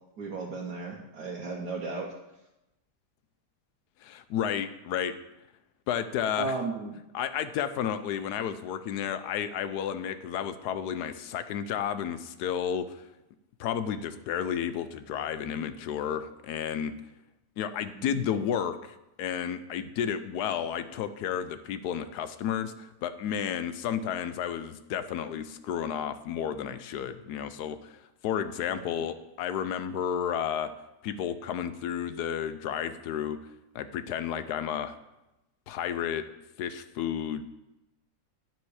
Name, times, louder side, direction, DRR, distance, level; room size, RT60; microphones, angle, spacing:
voice 1, 0.2-2.1 6.4-7.0 17.9-18.2 28.7-29.1, right 3 dB, 80° right, -2 dB, 1.6 m, -35 dB
voice 2, 4.0-5.1 5.9-6.6 7.1-13.0 13.6-16.9 17.6-30.7 31.0-33.4 33.7-35.0 35.7-36.2 36.6-37.4, left 9 dB, 80° left, 11 dB, 1.2 m, -32 dB
9.5 x 7.3 x 4.8 m, 0.93 s
omnidirectional pair, 1.7 m